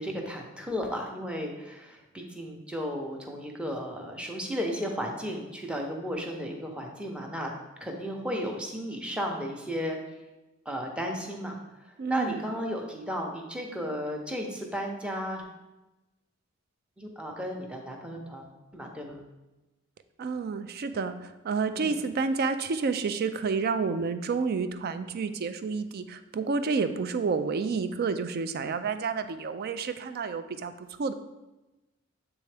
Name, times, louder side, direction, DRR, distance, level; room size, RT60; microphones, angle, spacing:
voice 1, 0.0-7.5 7.8-10.0 10.7-11.6 12.1-15.4 17.0-19.2 21.7-22.0, equal, 5° right, 1 dB, 0.7 m, -34 dB
voice 2, 12.0-12.4 20.2-31.1, right 4 dB, 50° right, 11 dB, 0.4 m, -30 dB
7.9 x 3.6 x 3.3 m, 1.0 s
head